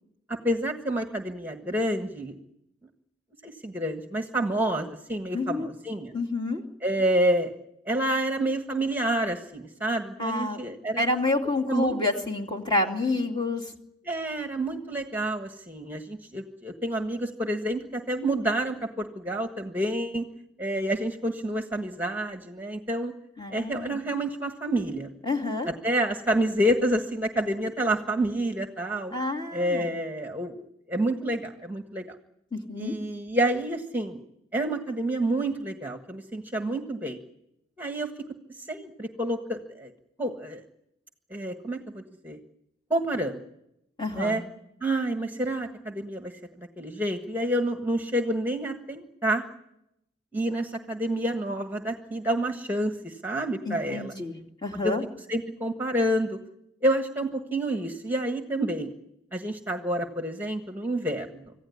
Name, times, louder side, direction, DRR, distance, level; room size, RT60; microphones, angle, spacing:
voice 1, 0.3-2.3 3.4-6.1 6.8-7.5 7.9-11.1 11.7-11.9 14.1-20.2 20.6-23.1 23.5-25.1 25.8-29.1 29.5-32.0 32.8-34.2 34.5-37.2 37.8-38.1 38.7-39.9 40.2-40.6 41.3-42.4 42.9-43.4 44.1-44.4 44.8-46.3 46.6-49.4 50.3-54.1 54.8-54.9 55.3-56.4 56.8-58.9 59.3-61.4, right 1 dB, 10° right, 5 dB, 1.5 m, -28 dB
voice 2, 5.3-5.7 6.1-6.6 10.2-10.6 11.0-13.6 23.4-24.0 25.2-25.7 29.1-30.0 32.5-32.9 44.0-44.4 53.6-54.3 54.6-55.0, left 2 dB, 25° left, 2 dB, 2.7 m, -28 dB
26.5 x 16.0 x 9.8 m, 0.84 s
head